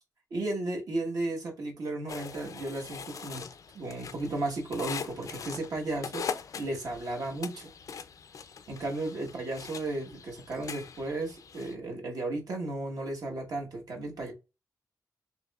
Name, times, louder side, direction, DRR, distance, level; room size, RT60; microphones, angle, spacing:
voice 1, 0.3-3.5 3.7-6.2 6.6-7.7 8.7-14.3, right 2 dB, 70° right, 1.2 m, -34 dB
sound 1, 2.1-11.7, left 6 dB, 55° left, 0.4 m, -42 dB
4.5 x 3.0 x 2.3 m
wide cardioid pair, 160°, 7 cm